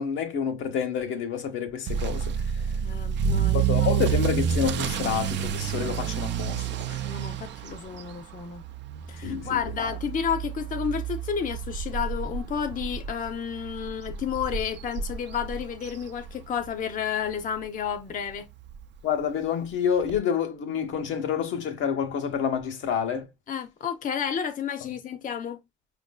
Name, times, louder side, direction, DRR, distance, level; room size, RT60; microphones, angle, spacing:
voice 1, 0.0-2.4 3.5-7.0 9.2-9.9 19.0-23.3 24.8-24.9, left 7 dB, 80° left, 0.9 m, -28 dB
Motor vehicle (road) / Accelerating revving vroom, 1.9-16.7 17.0-17.4 17.9-18.0 18.3-18.4 18.7-18.8 20.1-20.2, right 8 dB, 65° right, 0.5 m, -29 dB
voice 2, 2.8-3.9 7.0-8.6 9.1-18.5 23.5-25.6, left 7 dB, 45° left, 0.6 m, -31 dB
5.1 x 2.6 x 2.2 m
cardioid pair, 90°, 20 cm